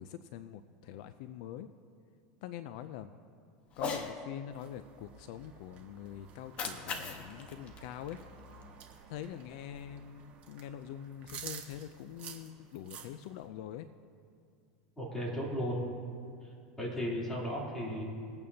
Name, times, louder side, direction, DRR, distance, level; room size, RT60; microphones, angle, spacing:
voice 1, 0.0-1.7 2.4-3.1 3.8-8.2 9.1-13.9, left 10 dB, 65° left, 11 dB, 0.4 m, -44 dB
Cat, 3.7-4.1 6.3-8.7, left 5 dB, 35° left, 1.1 m, -40 dB
sound 1, 4.5-13.5, right 7 dB, 40° right, 1.4 m, -51 dB
voice 2, 15.0-15.8 16.4-16.5 16.8-18.0, equal, 10° left, -5 dB, 3.1 m, -35 dB
21.5 x 8.8 x 2.8 m, 2.3 s
supercardioid pair, 135°, 4 cm